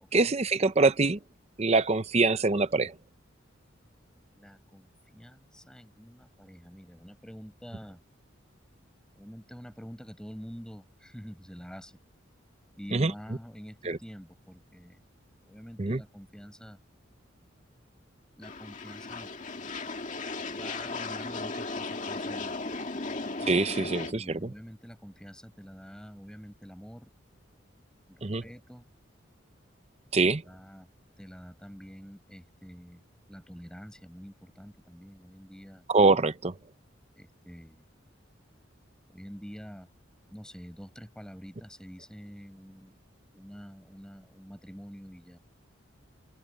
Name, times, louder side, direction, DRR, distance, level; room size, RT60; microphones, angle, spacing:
voice 1, 0.1-1.2 1.6-2.9 12.9-13.1 13.8-14.0 15.8-16.0 23.5-24.5 28.2-28.4 30.1-30.4 35.9-36.5, right 3 dB, 30° right, 0.7 m, -24 dB
voice 2, 4.3-8.0 9.1-12.0 12.8-15.0 15.4-16.8 18.4-19.3 20.5-22.5 23.8-27.1 28.1-28.9 30.1-30.9 31.2-33.0 33.3-35.8 37.1-37.9 39.1-39.9 40.3-43.0 43.3-45.4, equal, 5° left, 6.4 m, -47 dB
sound 1, 18.4-24.1, left 3 dB, 40° left, 2.0 m, -36 dB
head